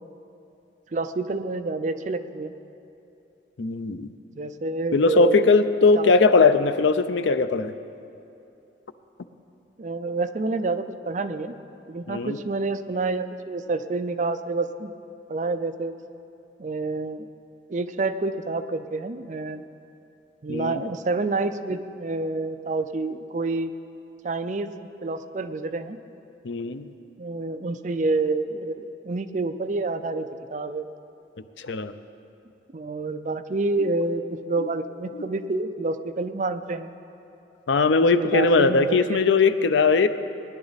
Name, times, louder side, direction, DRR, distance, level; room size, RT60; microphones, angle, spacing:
voice 1, 0.9-2.5 4.3-5.5 6.0-6.1 9.8-11.5 11.9-14.9 15.3-15.9 16.6-17.3 17.7-19.6 20.4-23.7 24.2-24.7 25.0-26.0 27.2-30.9 32.7-36.9 37.9-39.2, right 3 dB, 40° right, 9 dB, 0.4 m, -28 dB
voice 2, 3.6-4.1 4.9-7.7 12.1-12.4 20.5-20.8 26.4-26.9 31.6-31.9 37.7-40.1, left 4 dB, 80° left, 11 dB, 0.5 m, -20 dB
19.5 x 10.5 x 4.1 m, 2.8 s
head